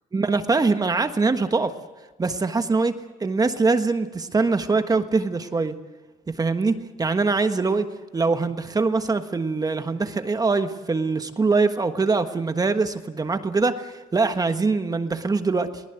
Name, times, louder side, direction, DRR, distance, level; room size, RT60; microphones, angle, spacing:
voice 1, 0.1-1.7 2.2-5.7 6.4-7.9 8.1-15.8, right 3 dB, 20° right, 8 dB, 1.4 m, -23 dB
23.0 x 19.0 x 8.0 m, 1.3 s
cardioid pair, 110°, 17 cm